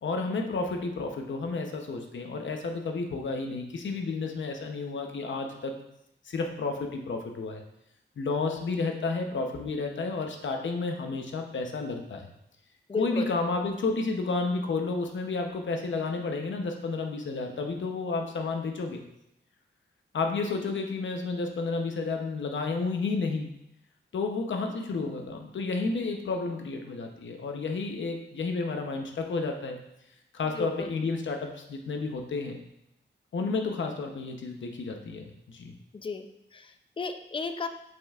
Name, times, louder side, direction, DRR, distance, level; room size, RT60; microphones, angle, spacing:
voice 1, 0.0-5.8 6.3-7.6 8.2-12.3 12.9-19.0 20.1-23.5 24.1-29.8 30.3-32.6 33.3-35.7, left 3 dB, 75° left, 3 dB, 0.8 m, -31 dB
voice 2, 12.9-13.3 30.5-30.9 35.9-36.3 36.5-37.7, left 4 dB, 25° left, 8 dB, 0.4 m, -34 dB
7.9 x 5.4 x 2.4 m, 0.82 s
wide cardioid pair, 120°, 20 cm